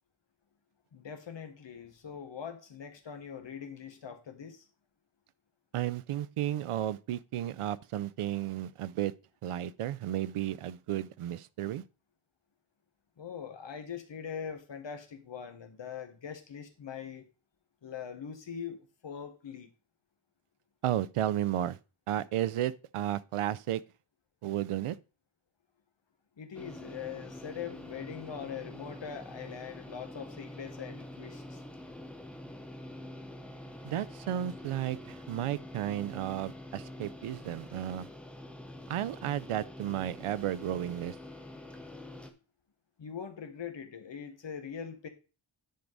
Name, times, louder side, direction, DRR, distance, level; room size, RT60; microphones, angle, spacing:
voice 1, 0.9-4.7 13.2-17.2 17.8-19.7 26.4-31.6 43.0-45.1, left 7 dB, 60° left, 1.4 m, -42 dB
voice 2, 5.7-9.1 9.4-11.8 20.8-21.8 22.1-23.8 24.4-25.0 33.8-38.1 38.9-41.2, right 12 dB, 90° right, 0.6 m, -33 dB
sound 1, 26.5-42.3, left 1 dB, ahead, 0.8 m, -46 dB
10.5 x 4.7 x 4.0 m
wide cardioid pair, 165°, 50 cm